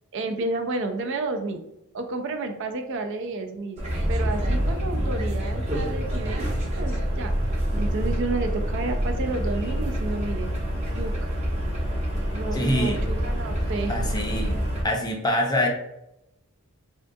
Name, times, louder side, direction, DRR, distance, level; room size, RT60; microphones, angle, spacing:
voice 1, 0.1-1.6 1.9-3.8 4.1-6.5 6.7-7.3 7.8-10.5 10.9-11.1 12.3-14.1, right 3 dB, 60° right, 6 dB, 0.4 m, -31 dB
sound 1, 3.8-14.8, equal, 30° right, 0.8 m, -26 dB
voice 2, 12.5-13.0 13.9-14.6 14.8-15.7, left 1 dB, 20° left, 1 dB, 0.5 m, -25 dB
3.6 x 2.2 x 2.6 m, 0.85 s
head